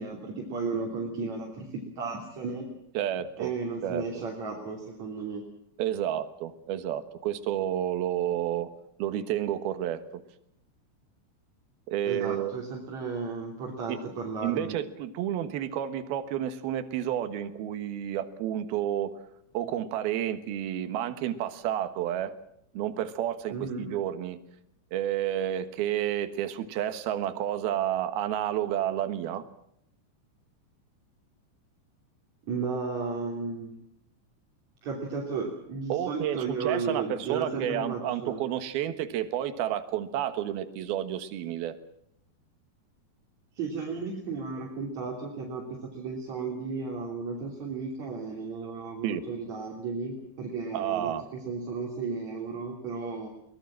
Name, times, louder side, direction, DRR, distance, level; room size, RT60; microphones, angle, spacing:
voice 1, 0.0-1.7 2.0-2.7 3.4-5.4 12.1-14.8 23.5-23.9 32.4-33.7 34.8-38.4 43.6-51.1 51.5-53.3, right 4 dB, 40° right, -1 dB, 4.0 m, -34 dB
voice 2, 2.9-3.5 3.8-4.0 5.8-8.7 9.0-10.2 11.9-12.5 13.9-14.0 14.4-19.1 19.5-22.3 22.7-24.4 24.9-29.4 35.9-41.8 49.0-49.2 50.7-51.3, right 11 dB, 65° right, 9 dB, 3.0 m, -30 dB
23.0 x 20.0 x 7.5 m, 0.75 s
omnidirectional pair, 5.3 m